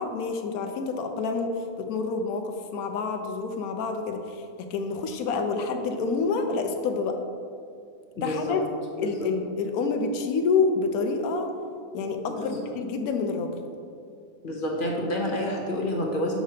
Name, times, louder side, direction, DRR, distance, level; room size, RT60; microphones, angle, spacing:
voice 1, 0.0-7.2 8.2-8.6 9.0-11.5 11.9-13.5, left 4 dB, 80° left, 5 dB, 1.1 m, -28 dB
voice 2, 8.2-8.6 9.0-9.3 12.4-12.7 14.4-16.4, left 1 dB, 45° left, -1 dB, 0.8 m, -29 dB
6.4 x 6.1 x 2.7 m, 2.4 s
omnidirectional pair, 1.5 m